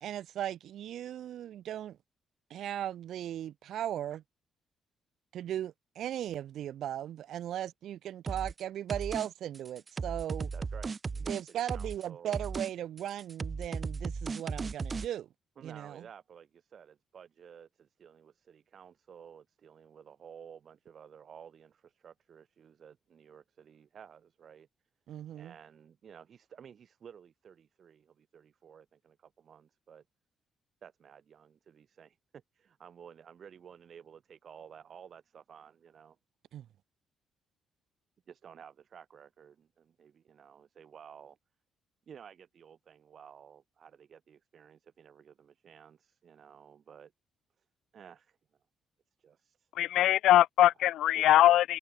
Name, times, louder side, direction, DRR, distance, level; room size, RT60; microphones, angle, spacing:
voice 1, 0.0-2.0 2.5-4.2 5.3-10.5 11.3-15.3 15.6-16.0 25.1-25.5 36.5-36.7, right 11 dB, 75° right, 0.7 m, -37 dB
sound 1, 8.3-8.6 8.9-9.3 9.5-12.0 12.3-12.7 13.0-15.1, right 4 dB, 35° right, 2.3 m, -36 dB
voice 2, 10.5-12.4 15.6-24.7 25.3-30.0 30.8-36.2 38.3-41.4 42.1-47.1 47.6-47.7 47.9-48.4 49.2-49.7 50.6-50.7 51.1-51.3, right 7 dB, 55° right, 4.6 m, -54 dB
voice 3, 49.8-51.8, left 13 dB, 85° left, 0.6 m, -22 dB
cardioid pair, 90°, 0 cm